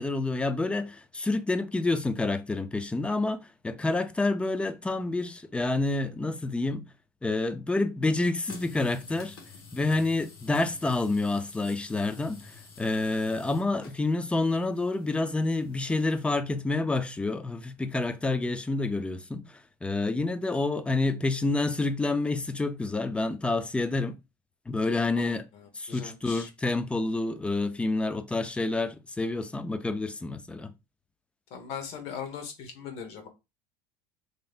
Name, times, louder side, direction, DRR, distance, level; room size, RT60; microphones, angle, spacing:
voice 1, 0.0-6.8 7.2-9.4 9.7-24.2 24.7-25.5 25.7-30.7, left 2 dB, 10° left, 0.4 m, -28 dB
sound 1, 8.4-16.3, left 4 dB, 85° left, 1.1 m, -50 dB
voice 2, 25.9-26.5 31.5-33.3, left 7 dB, 60° left, 1.1 m, -39 dB
3.2 x 2.7 x 2.4 m
supercardioid pair, 90°, 12 cm